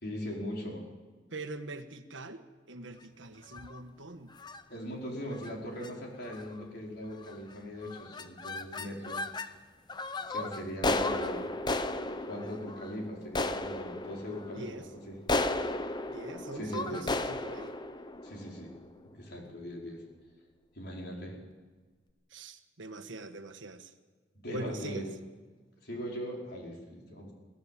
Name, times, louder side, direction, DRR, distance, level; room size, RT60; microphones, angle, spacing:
voice 1, 0.0-0.9 4.7-9.2 10.3-11.4 12.3-15.2 16.5-17.0 18.2-18.7 19.0-20.0 20.7-21.4 24.3-25.1 25.8-27.3, equal, 55° left, -1 dB, 4.9 m, -40 dB
voice 2, 1.3-4.3 14.5-14.8 16.1-17.8 22.3-23.9 24.5-25.0, right 2 dB, 70° right, 8 dB, 1.4 m, -43 dB
sound 1, 3.4-3.8 4.4-4.6 5.3-5.5 5.8-5.9 6.2-6.6 7.2-7.5 7.8-9.5 9.9-19.1, left 2 dB, 20° left, 0.8 m, -35 dB
22.5 x 16.0 x 7.4 m, 1.4 s
head